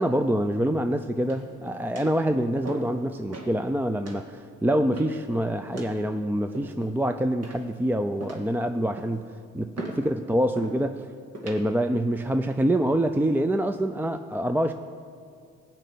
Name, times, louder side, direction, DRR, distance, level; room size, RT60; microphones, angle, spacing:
voice 1, 0.0-9.3 9.5-11.1 11.4-14.7, right 1 dB, 5° right, 8 dB, 0.5 m, -26 dB
sound 1, 1.2-1.6 2.0-2.2 2.6-3.0 3.3-3.6 4.0-4.2 4.9-5.2 5.7-6.0 6.5-7.0 7.4-7.8 8.2-8.5 9.0-9.3 9.8-10.0 10.6-10.8 11.3-11.6 12.3-12.6, right 2 dB, 55° right, 2.2 m, -39 dB
15.5 x 5.6 x 9.2 m, 2.2 s
cardioid pair, 90°, 30 cm